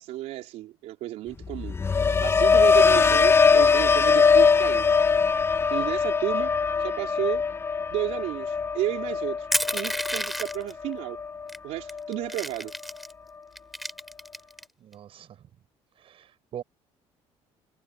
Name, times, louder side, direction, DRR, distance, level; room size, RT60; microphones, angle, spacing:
voice 1, 0.0-1.8 2.2-4.9 5.7-6.5 6.8-7.4 7.9-9.5 9.7-11.2 11.6-12.7, right 15 dB, 80° right, 4.1 m, -32 dB
sound 1, 1.4-11.5 11.9-12.3, left 5 dB, 20° left, 0.6 m, -22 dB
Crushing, 9.5-10.7 11.5-11.6 11.9-13.1 13.6-14.6, equal, ahead, 4.3 m, -30 dB
voice 2, 14.8-15.5 16.0-16.6, right 10 dB, 55° right, 6.3 m, -42 dB
cardioid pair, 115°, 11 cm